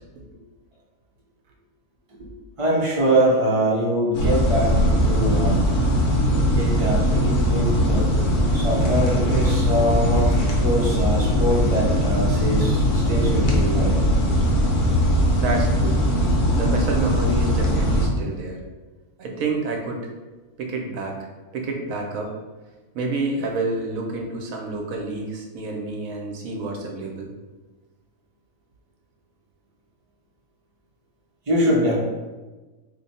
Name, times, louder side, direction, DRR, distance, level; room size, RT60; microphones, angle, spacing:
voice 1, 2.6-5.7 6.5-8.2 8.5-14.0 31.5-31.9, equal, 30° right, -5 dB, 0.6 m, -23 dB
sound 1, 4.1-18.1, equal, 90° left, 1.3 m, -20 dB
voice 2, 15.4-16.0 16.5-18.6 19.2-20.1 20.6-21.3 21.5-22.3 22.9-27.3, right 3 dB, 70° right, 1 dB, 1.0 m, -28 dB
3.0 x 2.2 x 4.1 m, 1.2 s
omnidirectional pair, 1.5 m